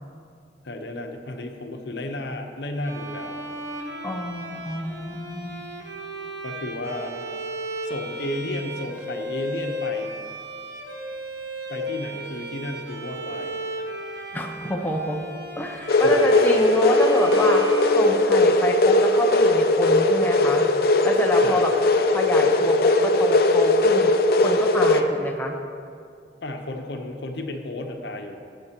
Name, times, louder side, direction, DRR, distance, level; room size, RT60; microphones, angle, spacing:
voice 1, 0.6-3.5 6.4-7.1 7.8-10.1 11.7-13.8 16.0-16.4 21.4-21.9 26.4-28.4, left 1 dB, 75° left, 4 dB, 0.8 m, -33 dB
Bowed string instrument, 2.8-18.7, right 1 dB, 80° right, 1.1 m, -35 dB
voice 2, 4.0-5.7 14.3-15.2 15.6-17.6 18.0-20.7 21.0-21.7 22.1-24.1 24.4-25.6, left 1 dB, 10° left, 1 dB, 0.5 m, -28 dB
sound 1, 15.9-25.0, left 2 dB, 55° left, 0.5 m, -19 dB
14.5 x 7.9 x 2.9 m, 2.3 s
head